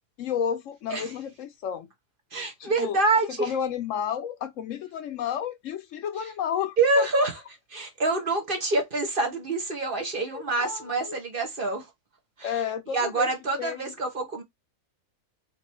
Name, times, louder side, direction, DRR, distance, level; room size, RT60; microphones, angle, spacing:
voice 1, 0.2-1.9 2.6-3.0 3.3-7.3 10.3-11.2 12.4-13.3 13.6-13.9, left 8 dB, 70° left, 1.0 m, -32 dB
voice 2, 2.3-3.5 6.8-7.4 7.7-11.8 12.4-12.5 12.9-14.4, right 3 dB, 40° right, 1.2 m, -26 dB
3.9 x 3.0 x 4.1 m
omnidirectional pair, 1.4 m